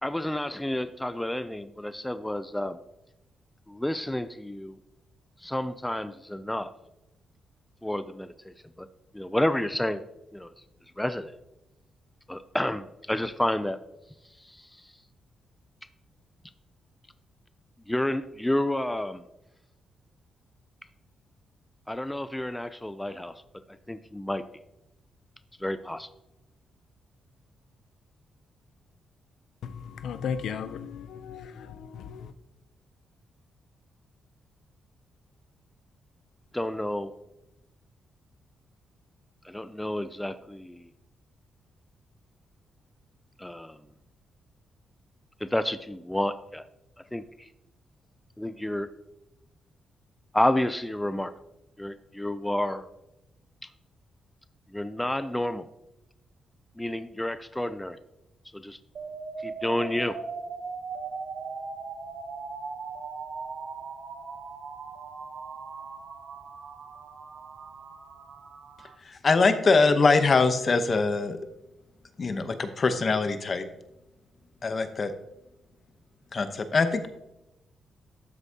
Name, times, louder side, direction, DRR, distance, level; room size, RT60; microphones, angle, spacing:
voice 1, 0.0-2.8 3.7-4.8 5.4-6.7 7.8-8.9 9.1-10.1 10.3-10.5 11.0-11.3 12.3-13.8 14.4-14.8 17.9-19.2 21.9-23.4 23.9-24.4 25.6-26.1 36.5-37.1 39.4-40.9 43.4-43.8 45.4-46.7 47.1-47.5 48.4-48.9 50.3-51.3 51.8-52.9 54.7-55.7 56.8-58.0 58.5-58.8 59.4-60.2, left 1 dB, 5° left, 12 dB, 0.4 m, -30 dB
voice 2, 29.6-32.3, left 7 dB, 80° left, 11 dB, 0.5 m, -36 dB
sound 1, 59.0-69.0, right 4 dB, 65° right, 0.9 m, -39 dB
voice 3, 69.1-71.5 72.2-73.7 74.6-75.1 76.3-77.1, left 4 dB, 40° left, 9 dB, 0.9 m, -23 dB
12.5 x 8.0 x 2.8 m, 0.90 s
cardioid pair, 100°, 0 cm